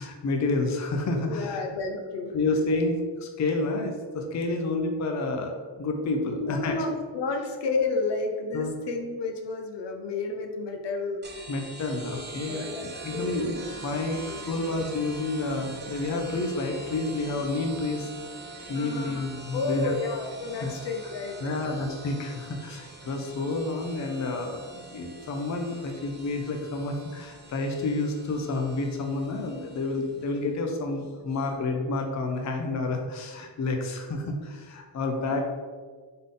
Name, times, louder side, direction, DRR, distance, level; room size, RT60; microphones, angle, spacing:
voice 1, 0.0-1.6 2.3-6.8 8.5-8.7 11.5-13.6 13.8-14.2 14.5-18.1 18.7-19.9 20.6-20.7 21.4-35.5, left 2 dB, 40° left, 3 dB, 0.5 m, -29 dB
voice 2, 1.3-2.4 6.4-11.2 12.1-12.2 12.5-13.6 14.1-14.4 18.7-19.3 19.5-21.8, left 3 dB, 75° left, 3 dB, 0.7 m, -31 dB
sound 1, 11.2-30.4, right 3 dB, 25° right, 0.6 m, -43 dB
3.8 x 3.6 x 3.7 m, 1.5 s
wide cardioid pair, 125°, 42 cm